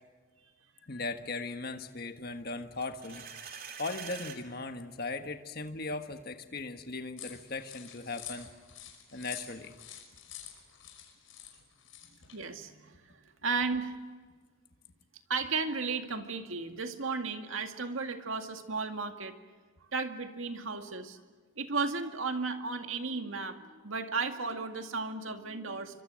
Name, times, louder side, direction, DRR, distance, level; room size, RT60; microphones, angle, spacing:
voice 1, 0.8-3.3 3.8-8.5 9.1-9.7, left 3 dB, 50° left, 7 dB, 1.5 m, -38 dB
sound 1, 2.8-4.4, right 7 dB, 45° right, 2.9 m, -44 dB
sound 2, 7.2-12.4, left 11 dB, 75° left, 5.5 m, -48 dB
voice 2, 12.2-13.9 15.3-19.3 19.9-21.2 21.6-26.0, right 4 dB, 75° right, 6 dB, 2.2 m, -34 dB
28.0 x 25.0 x 6.4 m, 1.5 s
head